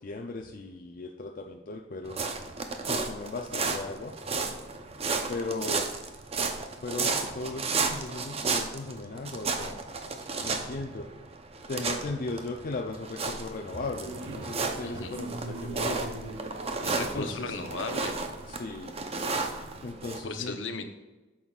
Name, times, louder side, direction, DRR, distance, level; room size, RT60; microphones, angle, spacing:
voice 1, 0.0-2.2 2.9-4.1 5.3-5.9 6.8-9.8 10.4-11.1 11.7-16.1 17.0-17.5 18.5-18.9 19.8-20.6, left 3 dB, 50° left, 2 dB, 0.5 m, -37 dB
sound 1, 2.0-20.2, right 4 dB, 35° right, 0.7 m, -33 dB
sound 2, 14.1-19.9, right 2 dB, 85° right, 0.9 m, -43 dB
voice 2, 14.8-15.2 16.8-18.2 20.2-20.9, left 3 dB, 75° left, 7 dB, 0.8 m, -36 dB
8.9 x 6.4 x 2.4 m, 1.1 s
head